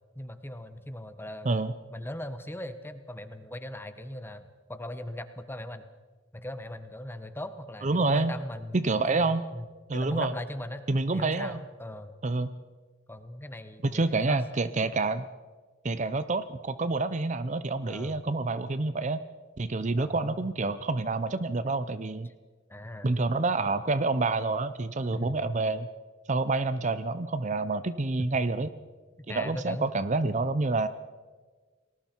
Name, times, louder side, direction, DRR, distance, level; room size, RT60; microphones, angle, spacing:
voice 1, 0.1-1.5 1.9-5.9 6.3-10.8 11.1-12.2 13.1-14.4 14.9-15.0 17.8-18.2 20.0-20.5 22.2-22.3 22.7-23.1 25.1-25.5 28.2-28.3 29.2-29.9 30.3-30.4, left 1 dB, 10° left, 10 dB, 1.2 m, -39 dB
voice 2, 7.8-8.3 8.7-9.4 9.9-10.3 10.9-11.6 12.2-12.5 13.8-15.2 15.8-19.2 19.6-22.3 23.0-25.9 26.3-28.7 29.3-30.9, right 3 dB, 35° right, 13 dB, 0.7 m, -28 dB
29.5 x 20.0 x 4.5 m, 1.4 s
head